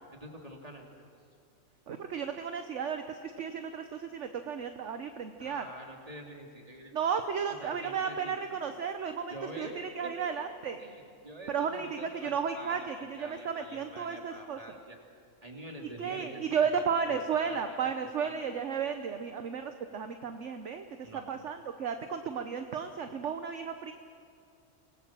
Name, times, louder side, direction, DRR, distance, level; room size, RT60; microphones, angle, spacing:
voice 1, 0.1-0.9 5.4-6.9 7.5-8.6 9.3-10.4 10.8-15.0 15.4-16.4 16.7-17.2 17.5-17.9 18.2-18.4 21.0-21.3, right 1 dB, 25° right, 1 dB, 3.1 m, -46 dB
voice 2, 1.9-5.7 6.9-10.8 11.5-14.8 16.0-23.9, right 6 dB, 60° right, 7 dB, 1.2 m, -34 dB
27.0 x 19.0 x 7.6 m, 2.4 s
omnidirectional pair, 1.4 m